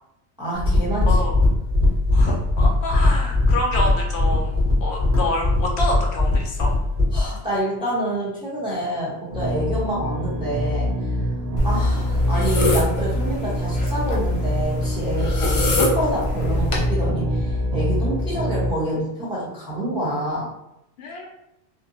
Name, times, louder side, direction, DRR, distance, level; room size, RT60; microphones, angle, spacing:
voice 1, 0.4-1.2 7.1-10.9 11.6-20.5, right 1 dB, 5° right, -7 dB, 0.7 m, -27 dB
sound 1, 0.6-7.3, left 2 dB, 35° right, 1.3 m, -19 dB
voice 2, 2.1-6.7 21.0-21.3, left 1 dB, 75° left, 0 dB, 0.8 m, -27 dB
sound 2, 9.3-18.7, left 1 dB, 70° right, 0.8 m, -24 dB
sound 3, 11.6-16.9, left 1 dB, 60° left, 0.3 m, -26 dB
2.7 x 2.2 x 2.6 m, 0.84 s
omnidirectional pair, 1.2 m